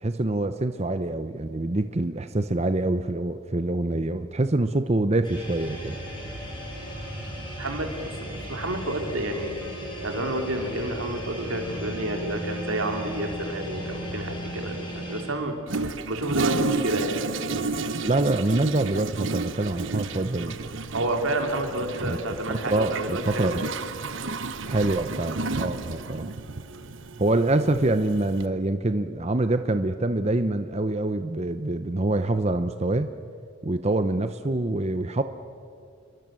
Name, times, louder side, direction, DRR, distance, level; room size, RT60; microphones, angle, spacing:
voice 1, 0.0-6.0 18.0-20.6 22.0-22.2 22.5-23.6 24.7-26.3 27.2-33.1 33.6-35.2, right 2 dB, 30° right, 9 dB, 0.8 m, -25 dB
sound 1, 5.2-15.2, equal, 25° left, 6.5 m, -36 dB
voice 2, 7.6-9.6 10.0-17.2 20.9-23.7, right 1 dB, 90° right, 3 dB, 3.6 m, -30 dB
Toilet flush, 15.7-28.5, right 4 dB, 65° right, 1.1 m, -32 dB
28.5 x 23.0 x 7.7 m, 2.4 s
head